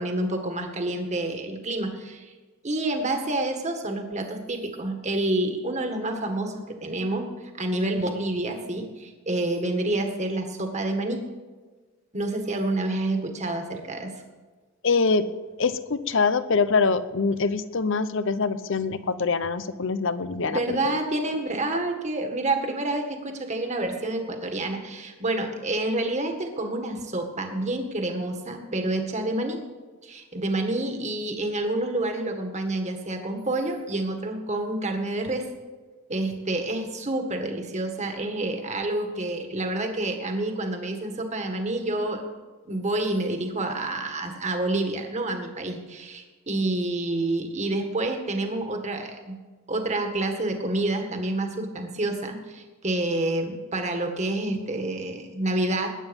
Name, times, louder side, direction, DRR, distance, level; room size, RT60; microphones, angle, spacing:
voice 1, 0.0-2.3 2.6-7.3 7.6-11.3 12.1-14.1 20.5-29.6 30.0-35.5 36.1-42.3 42.7-49.4 49.7-55.9, right 2 dB, 35° right, 4 dB, 1.8 m, -28 dB
voice 2, 14.8-15.3 15.6-20.6 20.8-21.0, left 4 dB, 65° left, 13 dB, 0.8 m, -24 dB
20.5 x 9.2 x 5.4 m, 1.3 s
head